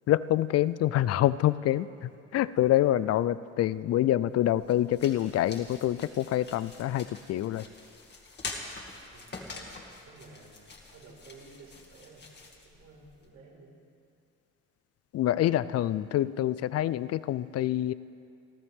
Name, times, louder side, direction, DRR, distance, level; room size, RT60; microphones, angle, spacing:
voice 1, 0.1-7.6 15.1-17.9, left 13 dB, 50° left, 17 dB, 0.4 m, -26 dB
sound 1, 4.3-13.3, left 3 dB, 35° left, 2.1 m, -45 dB
voice 2, 10.0-12.3 12.6-13.7, right 3 dB, 70° right, -4 dB, 4.9 m, -53 dB
30.0 x 12.5 x 3.6 m, 2.4 s
cardioid pair, 130°, 31 cm